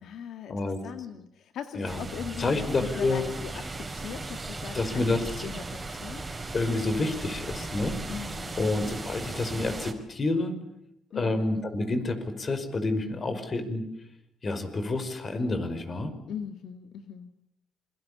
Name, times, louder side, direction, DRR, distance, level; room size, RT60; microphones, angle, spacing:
voice 1, 0.0-6.2 8.1-8.8 11.1-11.5 16.3-17.3, left 8 dB, 75° left, 8 dB, 1.7 m, -40 dB
sound 1, 1.8-9.9, right 2 dB, 20° right, 4.6 m, -37 dB
voice 2, 2.4-3.2 4.7-5.2 6.5-8.1 8.6-10.6 11.1-13.8 14.4-16.2, left 2 dB, 40° left, 10 dB, 5.2 m, -28 dB
27.0 x 24.0 x 8.6 m, 0.76 s
cardioid pair, 90°, 0 cm